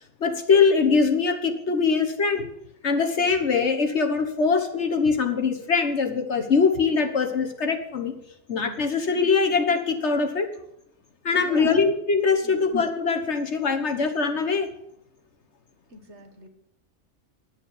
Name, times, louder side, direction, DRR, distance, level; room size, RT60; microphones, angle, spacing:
voice 1, 0.2-2.5 2.8-8.2 8.5-10.5 11.2-14.7, left 5 dB, 55° left, 5 dB, 1.5 m, -22 dB
voice 2, 11.4-11.8 12.4-12.7 15.9-16.5, right 2 dB, 55° right, 6 dB, 1.8 m, -42 dB
11.0 x 7.3 x 9.0 m, 0.76 s
omnidirectional pair, 1.4 m